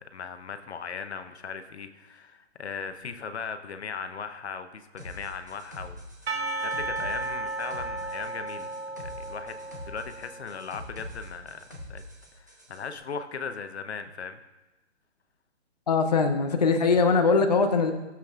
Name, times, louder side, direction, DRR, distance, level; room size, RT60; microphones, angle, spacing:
voice 1, 0.0-9.6 9.9-12.0 12.3-14.4, left 5 dB, 65° left, 9 dB, 0.8 m, -38 dB
sound 1, 5.0-12.8, left 1 dB, 15° right, 0.5 m, -44 dB
Percussion / Church bell, 6.3-10.7, right 3 dB, 55° right, 1.0 m, -34 dB
voice 2, 15.9-17.9, left 4 dB, 35° left, 5 dB, 0.5 m, -21 dB
14.0 x 7.5 x 2.4 m, 1.1 s
hypercardioid pair, 175°, 35 cm